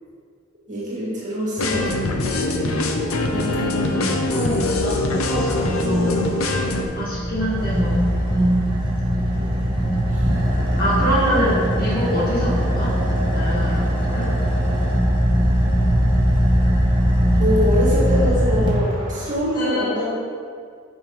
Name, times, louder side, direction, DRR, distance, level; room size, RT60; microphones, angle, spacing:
voice 1, 0.7-2.7 9.1-9.7 10.1-10.3 17.4-20.1, equal, 40° right, -6 dB, 1.8 m, -25 dB
sound 1, 1.6-6.9, left 2 dB, 80° left, 0.7 m, -23 dB
voice 2, 3.3-6.2 6.9-8.6 10.8-12.9 13.3-14.3 19.5-19.9, equal, 45° left, -7 dB, 1.8 m, -25 dB
Car / Idling, 6.4-19.3, equal, 25° right, 1.3 m, -20 dB
8.8 x 5.3 x 3.2 m, 2.1 s
head